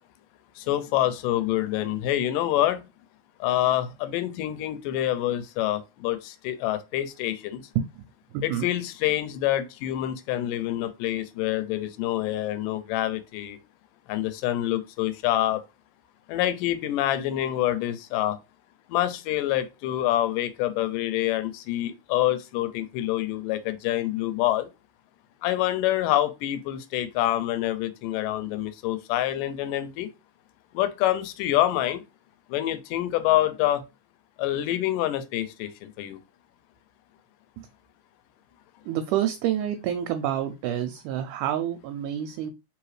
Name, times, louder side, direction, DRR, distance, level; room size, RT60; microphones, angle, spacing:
voice 1, 0.6-2.9 3.4-7.6 8.4-13.6 14.1-15.6 16.3-18.4 18.9-24.7 25.4-30.1 30.7-32.0 32.5-33.8 34.4-36.2, left 13 dB, 85° left, 2.1 m, -26 dB
voice 2, 8.3-8.7 37.6-37.7 38.9-42.5, right 11 dB, 80° right, 2.0 m, -28 dB
4.8 x 3.0 x 3.2 m
omnidirectional pair, 3.8 m